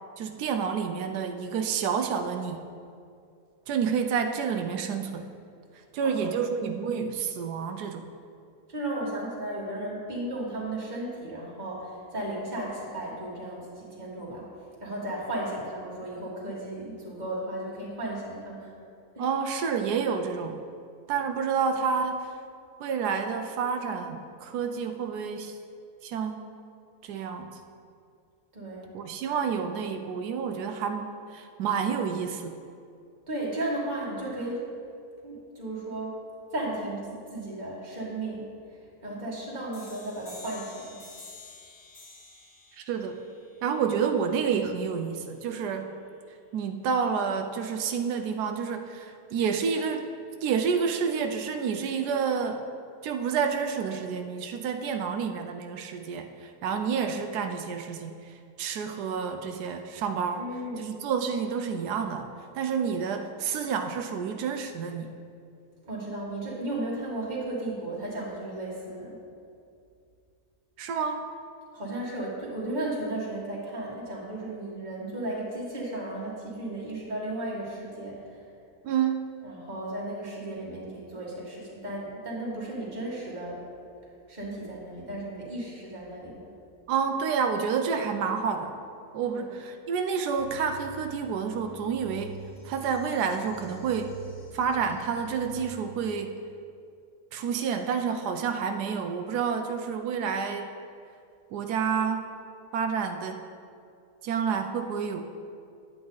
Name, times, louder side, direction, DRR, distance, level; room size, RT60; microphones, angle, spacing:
voice 1, 0.2-2.6 3.7-5.3 5.9-8.1 19.2-20.6 21.1-22.4 22.8-25.6 26.0-26.5 27.0-27.6 28.9-32.6 42.7-43.2 43.6-45.9 46.5-50.1 50.4-52.6 53.0-60.4 60.8-62.3 62.5-65.1 70.8-71.2 78.8-79.3 86.9-88.7 89.1-92.4 92.6-94.2 94.5-96.3 97.3-100.7 101.5-102.3 102.7-103.4 104.2-105.2, right 6 dB, 85° right, 5 dB, 1.2 m, -29 dB
voice 2, 6.0-6.3 8.7-14.5 14.8-18.7 19.2-19.3 28.5-28.9 33.3-34.7 35.2-36.2 36.5-38.5 39.0-41.0 60.4-60.9 65.9-69.2 71.7-78.4 79.4-83.6 84.3-86.5 89.3-89.5, right 1 dB, 30° right, -5 dB, 2.0 m, -35 dB
sound 1, 39.7-45.1, left 2 dB, 90° left, 3.2 m, -50 dB
sound 2, 90.4-95.7, right 2 dB, 45° left, 1.0 m, -46 dB
10.5 x 8.5 x 3.9 m, 2.4 s
omnidirectional pair, 1.7 m